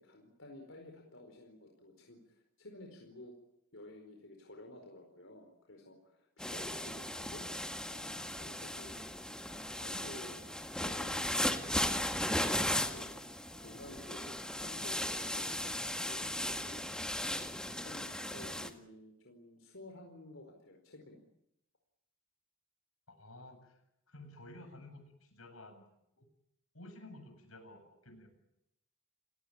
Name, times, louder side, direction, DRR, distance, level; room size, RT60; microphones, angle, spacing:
voice 1, 0.0-2.2 2.6-3.3 3.7-7.5 7.9-9.3 9.5-12.6 12.9-13.1 13.5-16.9 17.7-21.2, left 1 dB, 65° left, 2 dB, 4.7 m, -53 dB
sound 1, 6.4-18.7, left 1 dB, 5° left, 1.9 m, -37 dB
voice 2, 23.1-23.8 24.1-25.9 26.2-26.3 26.7-28.3, left 1 dB, 90° left, 6 dB, 7.8 m, -53 dB
29.5 x 18.5 x 8.8 m, 0.82 s
head